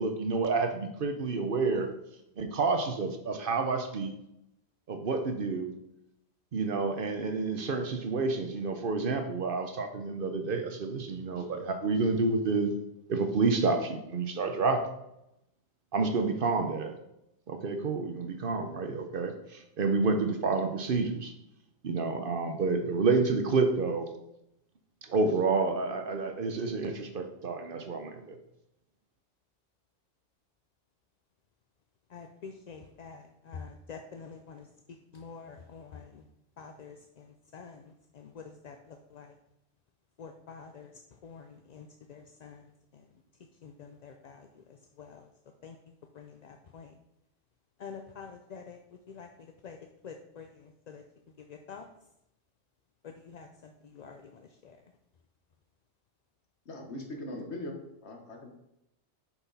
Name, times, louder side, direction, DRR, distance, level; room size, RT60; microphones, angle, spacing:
voice 1, 0.0-1.9 2.4-4.1 4.9-5.7 6.5-12.8 13.1-14.9 15.9-16.9 17.5-21.3 21.8-24.1 25.0-28.4, right 4 dB, 55° right, 6 dB, 0.8 m, -29 dB
voice 2, 32.1-34.6 35.1-36.1 36.6-36.9 37.5-37.8 38.2-38.7 39.1-39.3 40.2-40.9 41.2-42.6 43.6-44.4 45.0-45.1 45.6-45.7 46.2-46.9 47.8-48.8 49.1-49.3 49.6-49.8 50.0-50.5 50.9-51.0 51.5-51.8 53.3-53.5 54.0-54.2, left 6 dB, 55° left, 4 dB, 0.5 m, -46 dB
voice 3, 56.6-58.6, left 1 dB, 75° left, 2 dB, 1.5 m, -40 dB
5.9 x 5.8 x 4.1 m, 0.83 s
omnidirectional pair, 1.2 m